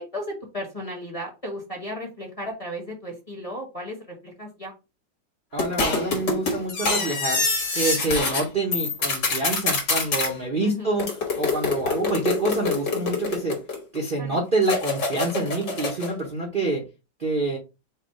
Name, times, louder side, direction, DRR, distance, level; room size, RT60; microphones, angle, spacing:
voice 1, 0.0-4.7 10.6-11.0 14.2-14.4, equal, 20° left, -1 dB, 1.2 m, -35 dB
voice 2, 5.5-7.4 7.7-11.1 11.4-13.6 13.9-16.9 17.2-17.6, right 2 dB, 35° right, -1 dB, 0.9 m, -26 dB
sound 1, 5.6-8.4 8.7-10.3 11.0-14.0 14.6-16.1, left 3 dB, 65° left, 2.1 m, -26 dB
4.7 x 2.4 x 4.7 m, 0.27 s
omnidirectional pair, 2.0 m